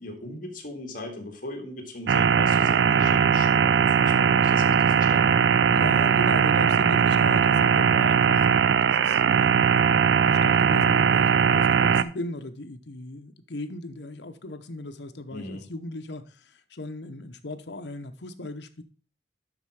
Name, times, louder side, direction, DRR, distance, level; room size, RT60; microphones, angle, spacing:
voice 1, 0.0-5.4 15.3-15.6, left 1 dB, 50° left, 2.0 m, -39 dB
sound 1, 2.1-12.0, right 7 dB, 70° right, 0.4 m, -20 dB
voice 2, 5.7-18.8, left 2 dB, 70° left, 0.9 m, -38 dB
11.5 x 4.3 x 4.8 m
head